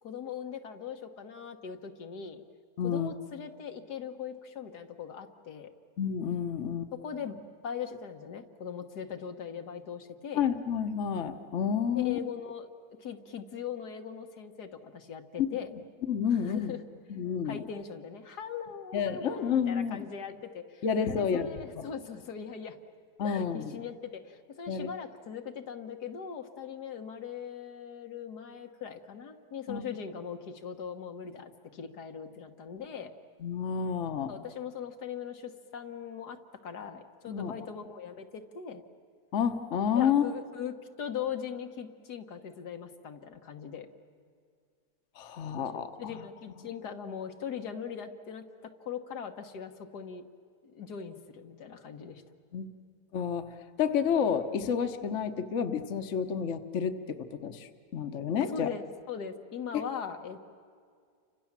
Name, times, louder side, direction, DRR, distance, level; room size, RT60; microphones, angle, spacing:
voice 1, 0.0-2.4 2.8-5.7 6.9-10.5 11.9-12.7 13.0-15.7 16.3-16.8 17.4-22.8 23.2-33.1 34.3-36.4 36.6-38.8 39.9-43.9 45.7-50.2 50.6-52.2 58.5-60.5, left 7 dB, 85° left, 5 dB, 1.9 m, -40 dB
voice 2, 2.8-3.1 6.0-6.9 10.3-12.2 15.4-15.6 16.1-16.7 17.1-17.6 18.9-20.0 20.8-21.5 21.8-21.9 23.2-23.7 24.7-24.9 29.7-29.8 33.4-34.3 37.3-37.5 39.3-40.2 45.2-46.2 52.5-52.7 53.1-53.5 53.8-58.7 59.7-59.8, left 7 dB, 55° left, 8 dB, 1.3 m, -30 dB
30.0 x 25.5 x 7.4 m, 2.2 s
omnidirectional pair, 1.7 m